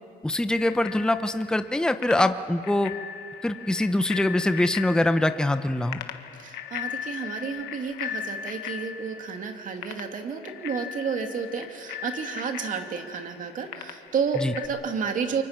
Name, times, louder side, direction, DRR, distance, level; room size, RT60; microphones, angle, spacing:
voice 1, 0.2-2.9 3.4-6.0 14.4-14.5, left 1 dB, 5° left, 9 dB, 0.8 m, -24 dB
Bicycle bell, 0.6-14.7, left 9 dB, 85° left, 1.5 m, -38 dB
voice 2, 6.3-15.4, right 6 dB, 50° right, 5 dB, 2.4 m, -31 dB
29.0 x 24.0 x 5.9 m, 2.5 s
cardioid pair, 110°, 17 cm